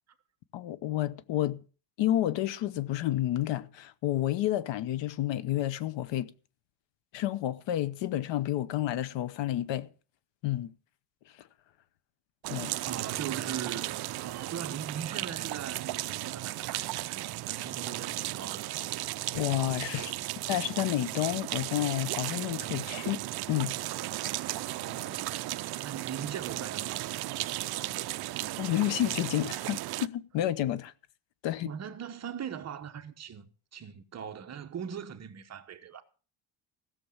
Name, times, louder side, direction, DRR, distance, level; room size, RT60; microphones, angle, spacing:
voice 1, 0.5-1.6 2.0-6.3 7.1-9.9 10.4-10.7 12.5-12.7 19.3-20.1 20.5-23.2 23.5-23.7 28.6-30.9 31.4-31.7, left 13 dB, 70° left, 0.9 m, -30 dB
sound 1, 12.4-30.1, right 16 dB, 55° right, 0.6 m, -35 dB
voice 2, 12.9-18.7 19.9-20.3 24.7-27.1 31.6-36.0, right 8 dB, 35° right, 1.1 m, -40 dB
16.0 x 6.9 x 7.2 m
cardioid pair, 175°, 47 cm